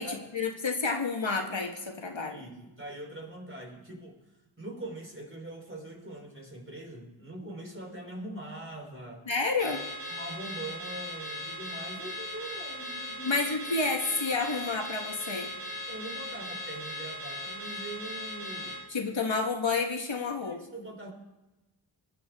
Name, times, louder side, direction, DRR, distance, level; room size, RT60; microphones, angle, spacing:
voice 1, 0.0-2.4 9.3-9.8 13.2-15.5 18.9-20.6, left 4 dB, 60° left, 2 dB, 1.6 m, -30 dB
voice 2, 2.3-4.2 4.6-9.2 10.1-13.6 15.9-18.8 20.4-21.1, right 1 dB, 25° right, 1 dB, 4.0 m, -42 dB
Car / Alarm, 9.6-18.8, equal, 90° right, 6.1 m, -38 dB
20.0 x 11.0 x 3.6 m, 1.0 s
wide cardioid pair, 55°, 50 cm